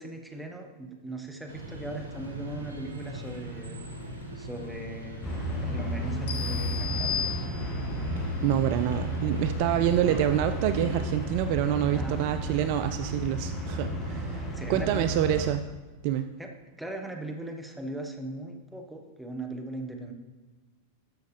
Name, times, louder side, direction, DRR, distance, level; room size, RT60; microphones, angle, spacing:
voice 1, 0.0-4.1 4.4-7.5 11.9-12.2 14.5-15.1 16.4-16.5 16.8-20.1, right 1 dB, 5° right, 3 dB, 1.3 m, -39 dB
sound 1, 1.5-11.2, right 2 dB, 75° right, 1.4 m, -40 dB
sound 2, 5.2-15.5, right 1 dB, 20° left, 1.7 m, -32 dB
sound 3, 6.3-8.0, left 9 dB, 60° left, 1.0 m, -34 dB
voice 2, 8.4-15.6 16.0-16.3, right 11 dB, 45° right, 10 dB, 0.3 m, -27 dB
12.5 x 6.3 x 3.3 m, 1.2 s
figure-of-eight pair, 90°, 0 cm